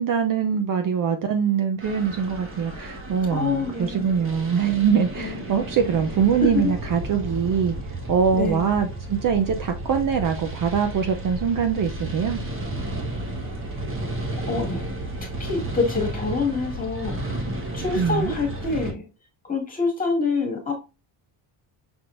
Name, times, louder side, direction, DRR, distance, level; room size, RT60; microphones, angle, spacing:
voice 1, 0.0-7.7 8.1-12.4 17.9-18.3, right 7 dB, 45° right, 0.6 m, -23 dB
sound 1, 1.8-18.9, right 1 dB, 25° right, 1.2 m, -33 dB
voice 2, 3.3-4.0 5.2-5.4 6.5-6.7 8.3-8.6 14.5-14.8 15.4-17.2 17.7-19.0 19.5-20.8, left 4 dB, 15° left, 1.8 m, -26 dB
6.0 x 3.5 x 2.5 m
cardioid pair, 170°, 48 cm